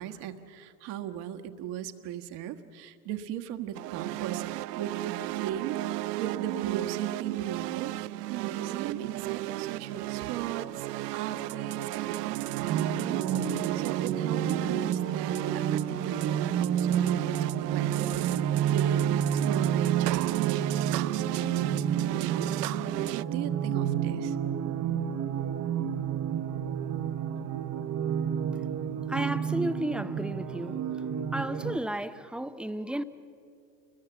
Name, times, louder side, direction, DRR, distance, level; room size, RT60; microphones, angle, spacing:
voice 1, 0.0-4.5 4.8-10.9 11.1-17.4 17.7-24.4, right 10 dB, 55° right, 1.6 m, -38 dB
sound 1, 3.7-23.2, right 18 dB, 75° right, 0.6 m, -34 dB
sound 2, 12.7-31.8, right 9 dB, 35° right, 1.1 m, -30 dB
voice 2, 29.1-30.8 31.3-33.0, right 1 dB, ahead, 0.6 m, -32 dB
29.0 x 21.0 x 7.3 m
hypercardioid pair, 90°, 49 cm